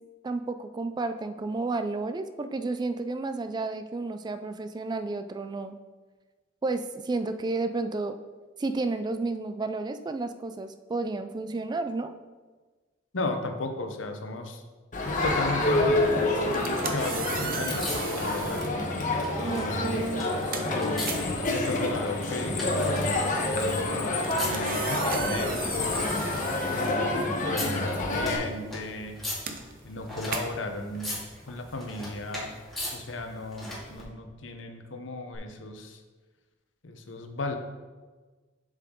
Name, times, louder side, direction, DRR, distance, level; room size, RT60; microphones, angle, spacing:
voice 1, 0.2-5.8 6.6-8.2 8.6-12.1 19.4-20.3, right 3 dB, 20° right, 10 dB, 0.3 m, -31 dB
voice 2, 13.1-14.6 15.2-18.7 19.4-20.1 20.7-21.1 21.5-29.2 29.8-31.2 31.5-32.6 32.9-36.0 36.8-37.6, left 2 dB, 75° left, 6 dB, 0.8 m, -35 dB
Crowd, 14.9-28.4, left 2 dB, 40° left, 1.1 m, -28 dB
sound 1, 15.9-34.0 35.3-35.4, left 1 dB, ahead, 2.2 m, -41 dB
sound 2, 16.4-18.8 19.6-19.8 20.2-27.7 28.0-32.6, right 5 dB, 50° right, 0.7 m, -38 dB
7.2 x 6.6 x 3.8 m, 1.3 s
head